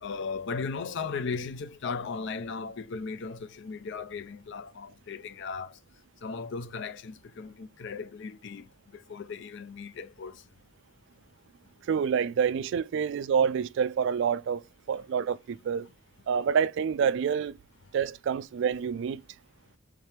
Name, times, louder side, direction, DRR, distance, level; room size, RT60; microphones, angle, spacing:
voice 1, 0.0-5.8 6.2-10.4, left 4 dB, 65° left, 0.5 m, -37 dB
voice 2, 11.9-15.9 16.3-17.6 17.9-19.2, right 7 dB, 65° right, 0.3 m, -27 dB
3.6 x 3.3 x 4.4 m
head